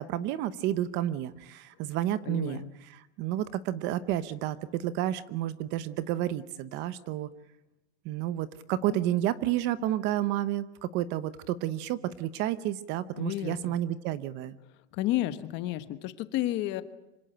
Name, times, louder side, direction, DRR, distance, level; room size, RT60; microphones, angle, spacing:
voice 1, 0.0-7.3 8.0-14.6, right 12 dB, 35° right, 16 dB, 0.8 m, -31 dB
voice 2, 2.2-2.7 13.2-13.7 14.9-16.8, left 15 dB, 35° left, 12 dB, 1.3 m, -31 dB
26.0 x 18.0 x 9.1 m, 0.95 s
supercardioid pair, 175°, 33 cm